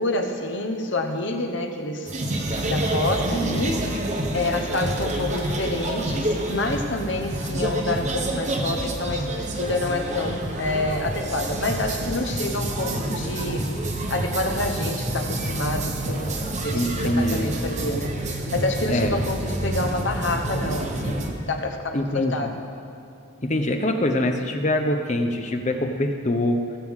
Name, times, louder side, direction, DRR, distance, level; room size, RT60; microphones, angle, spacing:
voice 1, 0.0-2.1 2.7-3.8 4.3-13.7 14.1-16.4 16.6-22.7, left 2 dB, 55° left, 4 dB, 1.1 m, -28 dB
sound 1, 2.1-21.3, right 1 dB, 35° right, 1.0 m, -28 dB
voice 2, 16.7-17.5 18.9-19.2 21.9-22.5 23.4-26.6, left 1 dB, 35° left, 5 dB, 0.7 m, -24 dB
19.5 x 8.1 x 3.7 m, 2.8 s
head